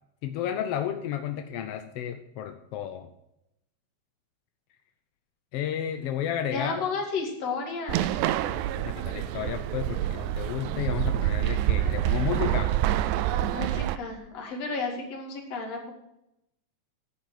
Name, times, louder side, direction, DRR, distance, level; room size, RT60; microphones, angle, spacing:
voice 1, 0.2-3.1 5.5-6.8 8.5-12.7, left 10 dB, 75° left, 6 dB, 1.4 m, -32 dB
voice 2, 6.5-8.1 13.5-15.9, left 4 dB, 55° left, 1 dB, 3.3 m, -32 dB
sound 1, 7.9-14.0, right 13 dB, 85° right, 2.0 m, -27 dB
11.0 x 7.5 x 7.5 m, 0.84 s
omnidirectional pair, 3.5 m